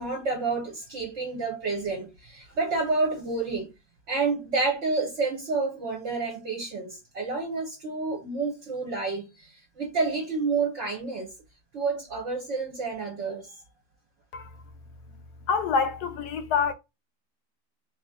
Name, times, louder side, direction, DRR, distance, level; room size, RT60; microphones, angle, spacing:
voice 1, 0.0-3.7 4.1-11.3 11.7-13.5, right 3 dB, 50° right, 1.0 m, -29 dB
voice 2, 15.5-16.7, left 5 dB, 70° left, 1.1 m, -26 dB
3.0 x 2.7 x 3.5 m
omnidirectional pair, 1.8 m